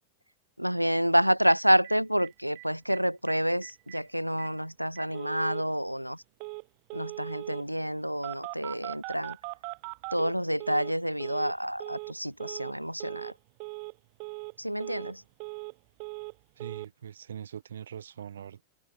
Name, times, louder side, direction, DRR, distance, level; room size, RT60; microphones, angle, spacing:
voice 1, 0.6-6.2 6.9-9.4 10.1-13.3 14.6-15.2, equal, 90° right, 3.3 m, -28 dB
Telephone, 1.5-1.6 1.8-1.9 2.2-2.3 2.6-3.0 3.3-3.4 3.6-4.0 4.4-4.5 5.0-5.6 6.4-6.6 6.9-7.6 8.2-10.9 11.2-11.5 11.8-12.1 12.4-12.7 13.0-13.3 13.6-13.9 14.2-14.5 14.8-15.7 16.0-16.3 16.6-16.9, right 40 dB or more, 45° right, 3.0 m, -40 dB
voice 2, 16.6-18.6, right 8 dB, 65° right, 6.4 m, -42 dB
figure-of-eight pair, 90°, 0 cm